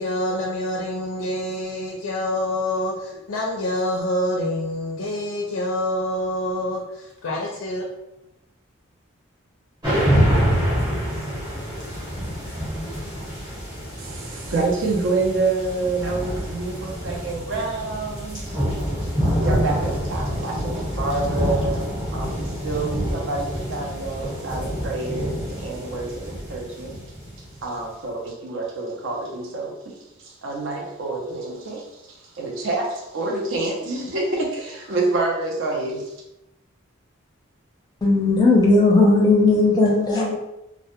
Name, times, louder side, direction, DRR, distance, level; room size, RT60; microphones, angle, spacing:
voice 1, 0.0-7.9, left 1 dB, 80° left, -2 dB, 0.4 m, -26 dB
sound 1, 9.8-27.6, equal, 20° right, 0.8 m, -26 dB
voice 2, 14.0-18.5 19.3-27.0 27.6-30.0 30.2-36.0, right 3 dB, 70° right, -1 dB, 0.5 m, -27 dB
voice 3, 38.0-40.3, left 2 dB, 20° left, -3 dB, 0.5 m, -16 dB
2.1 x 2.0 x 2.9 m, 0.89 s
head